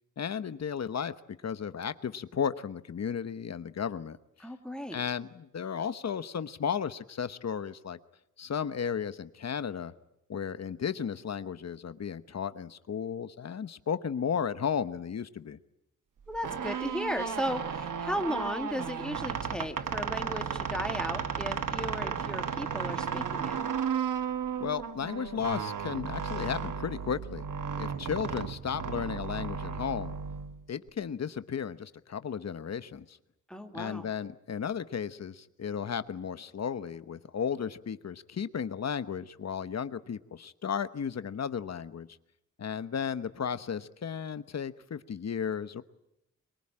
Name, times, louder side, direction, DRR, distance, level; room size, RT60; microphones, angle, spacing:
voice 1, 0.2-1.1 1.4-4.2 4.9-8.0 8.4-9.9 10.3-15.6 24.6-27.5 27.8-30.1 30.7-33.2 33.7-42.1 42.6-45.8, left 7 dB, 55° left, 13 dB, 1.1 m, -34 dB
voice 2, 4.4-5.0 16.3-23.6 33.5-34.1, equal, 5° left, 5 dB, 2.3 m, -35 dB
sound 1, 16.3-30.9, right 7 dB, 85° right, 1.2 m, -34 dB
24.5 x 22.5 x 8.8 m, 0.83 s
wide cardioid pair, 155°, 31 cm